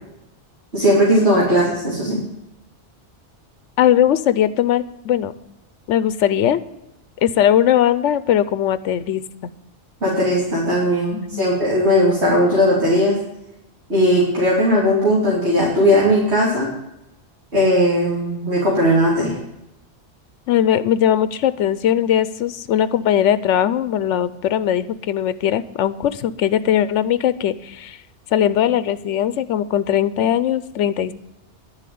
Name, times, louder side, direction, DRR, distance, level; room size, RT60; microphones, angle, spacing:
voice 1, 0.7-2.2 10.0-13.2 13.9-16.7 17.5-19.3, equal, 65° right, -7 dB, 3.4 m, -17 dB
voice 2, 3.8-5.3 5.9-6.6 7.2-9.2 11.1-11.5 20.5-28.0 28.3-31.1, left 10 dB, 85° left, 14 dB, 0.9 m, -19 dB
10.5 x 7.3 x 9.3 m, 0.89 s
omnidirectional pair, 1.2 m